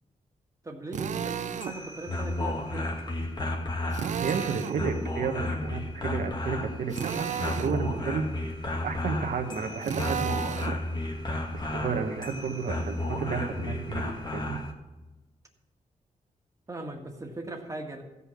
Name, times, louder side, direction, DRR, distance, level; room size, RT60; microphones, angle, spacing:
voice 1, 0.6-2.9 16.7-18.0, right 2 dB, 25° right, 2 dB, 1.8 m, -39 dB
Drill, 0.9-1.8 3.9-4.8 6.9-7.8 9.8-10.8, right 8 dB, 60° right, 0.5 m, -32 dB
sound 1, 1.4-14.7, left 2 dB, 30° left, 1.8 m, -33 dB
voice 2, 4.2-8.2 8.8-10.7 11.5-14.6, right 5 dB, 85° right, 4 dB, 1.3 m, -32 dB
15.0 x 5.6 x 7.1 m, 1.1 s
wide cardioid pair, 105°, 14 cm